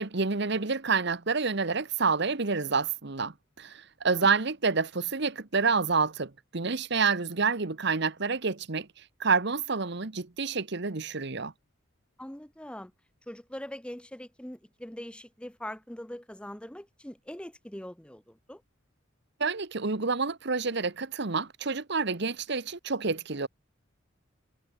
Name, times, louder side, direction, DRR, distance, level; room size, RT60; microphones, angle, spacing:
voice 1, 0.0-8.9 9.2-11.5 19.4-23.5, right 4 dB, 60° right, 1.2 m, -28 dB
voice 2, 12.2-12.9 13.3-18.6, left 1 dB, 5° left, 0.9 m, -42 dB
head